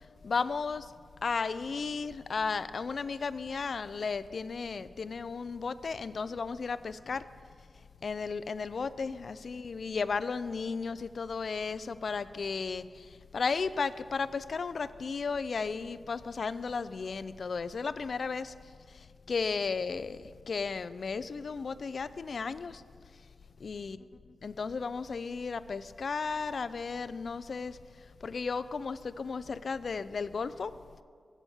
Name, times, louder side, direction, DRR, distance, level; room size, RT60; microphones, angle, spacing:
voice 1, 0.2-0.9 1.2-7.2 8.0-18.5 19.3-20.2 20.5-22.8 23.6-24.0 24.4-27.8 28.2-30.7, left 5 dB, 60° left, 15 dB, 0.3 m, -34 dB
7.9 x 7.2 x 7.0 m, 2.1 s
wide cardioid pair, 100°, 0 cm